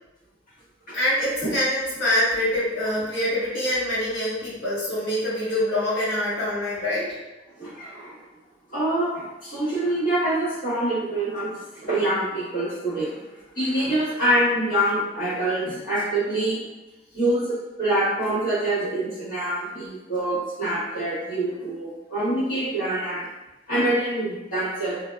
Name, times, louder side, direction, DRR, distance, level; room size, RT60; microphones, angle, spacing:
voice 1, 0.9-7.2, left 1 dB, 75° left, -8 dB, 1.3 m, -25 dB
voice 2, 7.6-8.2 8.7-13.2 13.5-16.7 17.1-23.2 23.7-25.0, right 1 dB, 50° left, -10 dB, 1.3 m, -25 dB
2.6 x 2.2 x 2.2 m, 1.1 s
head